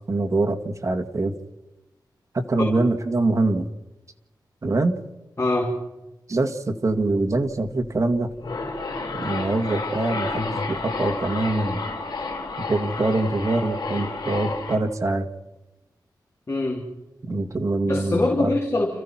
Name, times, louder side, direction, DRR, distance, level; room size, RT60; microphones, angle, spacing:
voice 1, 0.1-1.3 2.3-3.7 4.6-4.9 6.3-8.3 9.1-11.8 12.7-15.3 17.3-18.6, right 2 dB, 40° right, 4 dB, 1.9 m, -24 dB
voice 2, 5.4-5.8 16.5-16.9 17.8-19.0, left 2 dB, 35° left, 0 dB, 3.3 m, -23 dB
sound 1, 8.2-14.8, left 3 dB, 65° left, 4.3 m, -31 dB
30.0 x 14.5 x 5.9 m, 1.0 s
wide cardioid pair, 100°, 8 cm